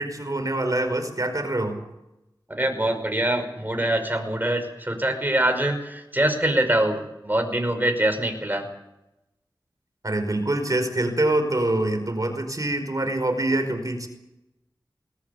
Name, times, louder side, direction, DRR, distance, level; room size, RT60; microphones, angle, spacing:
voice 1, 0.0-1.8 10.0-14.1, right 1 dB, 45° right, 6 dB, 5.2 m, -25 dB
voice 2, 2.5-8.7, right 1 dB, 20° right, 6 dB, 5.3 m, -24 dB
20.5 x 20.0 x 8.4 m, 0.93 s
wide cardioid pair, 45°, 8 cm